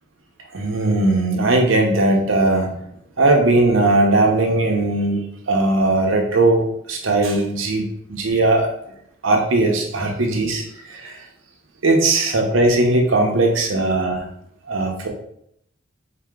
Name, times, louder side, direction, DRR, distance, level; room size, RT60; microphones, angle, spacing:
voice 1, 0.5-2.7 3.2-8.7 9.2-11.3 11.8-14.3 14.7-15.1, right 2 dB, 85° right, 2 dB, 0.8 m, -18 dB
4.1 x 2.9 x 3.6 m, 0.73 s
head